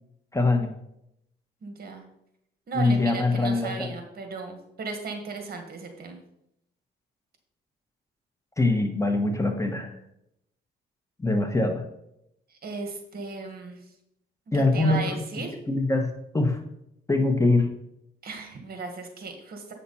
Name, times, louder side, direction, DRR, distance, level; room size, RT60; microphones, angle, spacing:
voice 1, 0.3-0.7 2.7-3.9 8.6-9.9 11.2-11.8 14.5-15.2 15.7-16.6 17.1-17.7, left 2 dB, 15° left, 5 dB, 1.1 m, -23 dB
voice 2, 1.6-2.0 2.7-6.2 12.5-13.8 14.5-15.6 18.2-19.7, right 3 dB, 50° right, 4 dB, 1.8 m, -36 dB
8.4 x 5.9 x 4.2 m, 0.79 s
cardioid pair, 90°, 20 cm